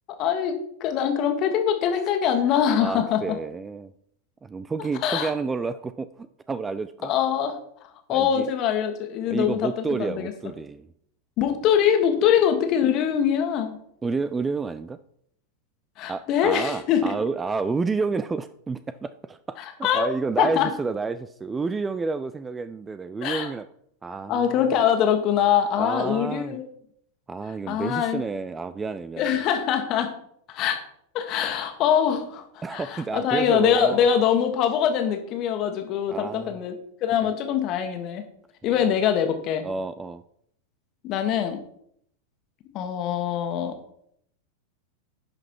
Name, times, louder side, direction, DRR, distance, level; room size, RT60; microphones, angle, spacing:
voice 1, 0.2-3.2 5.0-5.3 7.0-7.5 8.1-10.3 11.4-13.8 16.0-17.1 19.6-20.7 23.2-23.5 24.3-26.6 27.7-28.2 29.2-30.1 30.5-30.8 31.1-32.4 32.7-36.7 37.0-38.3 38.6-39.6 41.0-41.6 42.7-43.8, left 9 dB, 35° left, 6 dB, 1.6 m, -23 dB
voice 2, 2.8-3.9 4.4-7.1 8.1-8.5 9.3-10.9 14.0-15.0 16.1-23.7 24.0-24.7 25.8-26.6 27.3-29.3 32.6-34.1 36.1-36.6 37.2-37.3 38.6-38.9 39.6-40.2, right 4 dB, 15° right, 13 dB, 0.4 m, -30 dB
11.0 x 5.9 x 4.6 m, 0.68 s
figure-of-eight pair, 90°, 0 cm